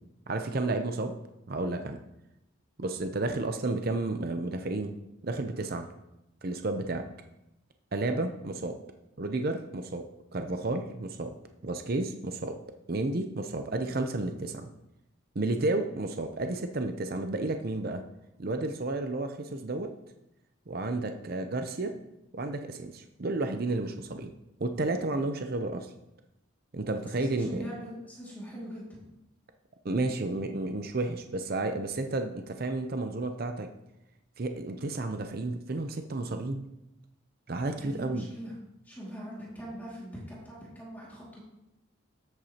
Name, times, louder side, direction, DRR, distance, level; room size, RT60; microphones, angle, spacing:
voice 1, 0.3-1.1 1.5-2.0 2.8-4.9 5.2-5.9 6.4-7.0 7.9-8.8 9.2-10.0 10.3-11.3 11.6-12.6 12.9-14.7 15.3-18.0 18.4-19.9 20.7-21.9 22.3-24.3 24.6-25.9 26.7-27.6 29.8-33.7 34.4-36.6 37.5-38.3, right 2 dB, 50° right, 6 dB, 0.6 m, -31 dB
voice 2, 27.1-29.0 37.8-38.5 38.8-41.4, equal, 10° left, -6 dB, 2.2 m, -41 dB
13.5 x 8.0 x 2.9 m, 0.87 s
head